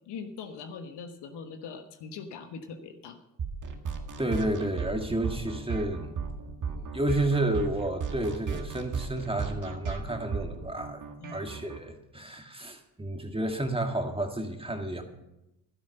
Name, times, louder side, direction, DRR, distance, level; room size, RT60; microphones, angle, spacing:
voice 1, 0.1-3.2 11.2-11.4, left 5 dB, 55° left, 7 dB, 1.4 m, -41 dB
sound 1, 3.4-11.8, right 5 dB, 35° right, 1.9 m, -35 dB
voice 2, 4.2-6.1 6.6-11.0 11.3-15.0, right 1 dB, 10° right, 5 dB, 1.9 m, -31 dB
12.0 x 10.0 x 5.7 m, 0.90 s
hypercardioid pair, 60°, 50 cm